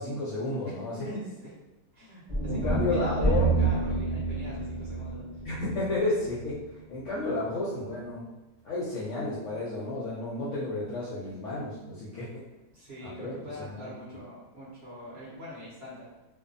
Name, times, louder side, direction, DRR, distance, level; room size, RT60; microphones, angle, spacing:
voice 1, 0.0-1.0 2.5-3.5 5.4-8.2 8.6-12.5 13.0-13.9, left 2 dB, 65° left, -7 dB, 0.7 m, -32 dB
voice 2, 0.6-1.5 1.9-5.4 12.7-16.1, equal, 50° right, -9 dB, 0.9 m, -42 dB
sound 1, 2.3-6.5, right 3 dB, 35° right, 0.5 m, -28 dB
2.6 x 2.3 x 2.5 m, 1.0 s
omnidirectional pair, 1.8 m